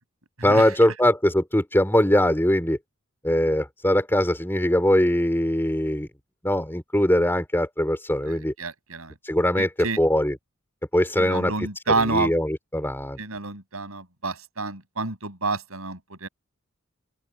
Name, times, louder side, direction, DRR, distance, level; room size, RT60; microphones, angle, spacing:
voice 1, 0.4-2.8 3.2-6.1 6.4-8.5 9.2-10.4 10.9-11.5 11.9-13.2, left 1 dB, 10° left, 3.9 m, -21 dB
voice 2, 8.3-9.1 9.6-10.0 11.2-12.3 13.2-16.3, right 3 dB, 85° right, 6.4 m, -29 dB
open air
head